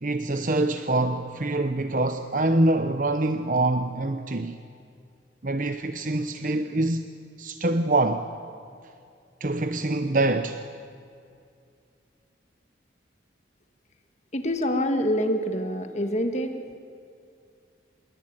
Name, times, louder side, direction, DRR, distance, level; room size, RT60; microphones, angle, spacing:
voice 1, 0.0-4.6 5.4-7.1 7.4-8.3 9.4-10.6, right 2 dB, 45° right, 0.9 m, -25 dB
voice 2, 14.3-16.7, equal, 40° left, 1.8 m, -26 dB
27.0 x 21.5 x 8.9 m
head